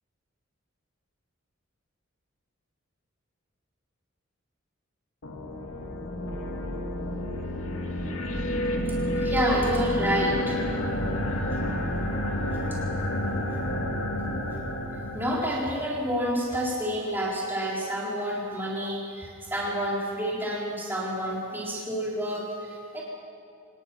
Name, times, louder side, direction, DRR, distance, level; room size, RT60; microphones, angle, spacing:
sound 1, 5.2-15.7, left 1 dB, 85° left, 2.5 m, -29 dB
voice 1, 9.2-10.6 15.1-23.0, equal, 10° right, -5 dB, 3.9 m, -29 dB
27.0 x 19.5 x 6.2 m, 2.6 s
head